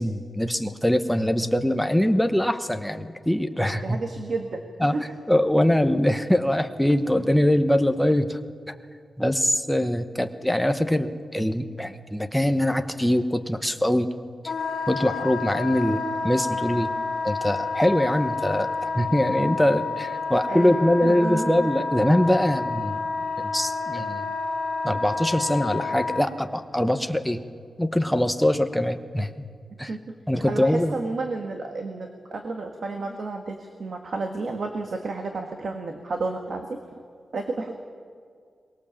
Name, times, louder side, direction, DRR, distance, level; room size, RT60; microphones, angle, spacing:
voice 1, 0.0-4.0 4.8-5.0 5.3-8.4 9.2-14.1 14.9-16.9 17.2-23.0 23.4-24.3 24.8-27.4 27.8-29.5 29.8-29.9 30.3-30.9, left 1 dB, 5° left, 7 dB, 0.9 m, -23 dB
voice 2, 3.8-5.0 20.5-21.7 29.9-30.1 30.5-36.7 37.3-37.7, right 3 dB, 50° right, 4 dB, 1.6 m, -31 dB
Wind instrument woodwind instrument, 14.5-26.2, left 4 dB, 50° left, 2.9 m, -29 dB
23.0 x 20.5 x 7.2 m, 2.1 s
wide cardioid pair, 180°, 0 cm